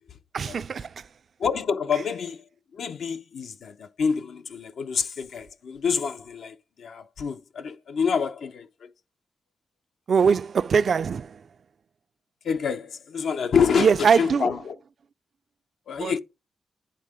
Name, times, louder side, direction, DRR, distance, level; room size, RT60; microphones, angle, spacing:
voice 1, 0.3-1.0 10.1-11.4 13.8-14.5 16.0-16.1, right 6 dB, 60° right, 0.4 m, -22 dB
voice 2, 1.4-2.4 2.7-8.7 12.4-14.7 15.9-16.2, left 6 dB, 80° left, 0.7 m, -27 dB
10.0 x 3.7 x 4.9 m
wide cardioid pair, 110°, 0 cm